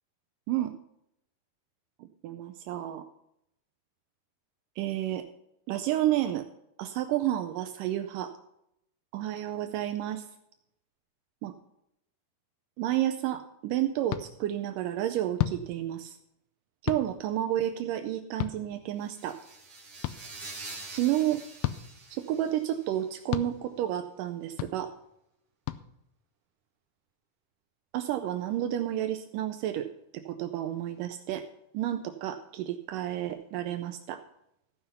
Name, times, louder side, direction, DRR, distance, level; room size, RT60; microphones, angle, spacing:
voice 1, 2.0-3.0 4.8-5.3 5.7-6.4 6.8-8.3 9.1-10.2 11.4-11.5 12.8-16.2 16.8-19.4 20.9-21.4 22.1-24.9 27.9-29.9 30.1-31.4 31.7-34.2, right 12 dB, 90° right, 7 dB, 1.9 m, -31 dB
sound 1, 14.1-14.2 15.4-15.6 16.9-17.0 18.4-18.6 20.0-20.2 21.6-21.8 23.3-23.5 24.6-24.7 25.7-25.8, left 15 dB, 80° left, 2.2 m, -30 dB
sound 2, 19.0-22.9, right 3 dB, 25° right, 3.7 m, -45 dB
15.0 x 5.6 x 5.6 m, 0.80 s
omnidirectional pair, 4.5 m